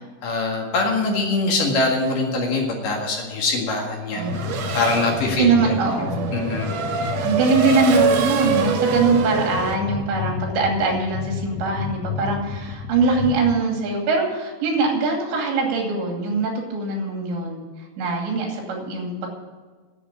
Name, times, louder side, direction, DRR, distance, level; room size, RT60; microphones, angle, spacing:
voice 1, 0.2-4.3 4.7-5.7 6.3-6.7, left 3 dB, 55° left, 0 dB, 3.1 m, -23 dB
Race car auto racing / Accelerating revving vroom, 4.1-9.8, right 5 dB, 70° right, 1.7 m, -25 dB
voice 2, 4.2-4.5 5.3-6.3 7.2-17.6 18.0-19.3, right 4 dB, 90° right, 1 dB, 4.8 m, -22 dB
sound 1, 4.3-13.6, left 5 dB, 75° left, 2.8 m, -31 dB
11.0 x 8.5 x 9.7 m, 1.4 s
omnidirectional pair, 5.0 m